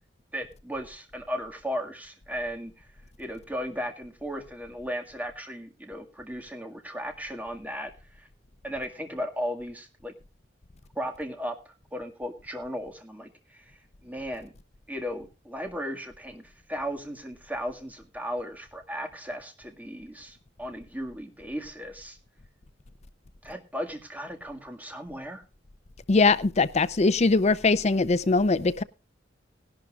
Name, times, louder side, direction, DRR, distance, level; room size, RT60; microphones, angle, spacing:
voice 1, 0.3-2.9 3.2-8.3 8.6-10.1 11.0-13.7 14.0-14.5 14.9-22.2 23.4-25.4, equal, 10° right, 1.9 m, -36 dB
voice 2, 26.1-28.8, left 3 dB, 35° left, 0.6 m, -21 dB
18.5 x 11.5 x 2.4 m
head